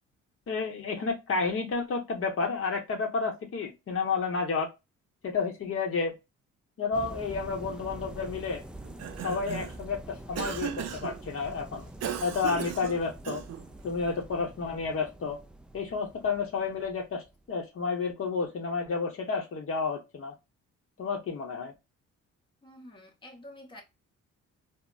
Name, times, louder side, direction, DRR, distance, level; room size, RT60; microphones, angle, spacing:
voice 1, 0.5-4.7 5.2-6.1 6.8-8.6 9.2-11.9 12.2-13.4 13.8-15.4 15.7-20.3 21.0-21.7, left 4 dB, 45° left, 0.8 m, -31 dB
sound 1, 6.9-17.4, right 1 dB, 5° right, 0.3 m, -45 dB
Cough, 8.8-9.8 10.4-11.2 12.0-13.7, right 9 dB, 60° right, 0.5 m, -36 dB
voice 2, 22.6-23.8, left 1 dB, 15° left, 0.7 m, -48 dB
4.0 x 2.0 x 2.2 m
cardioid pair, 90°, 30 cm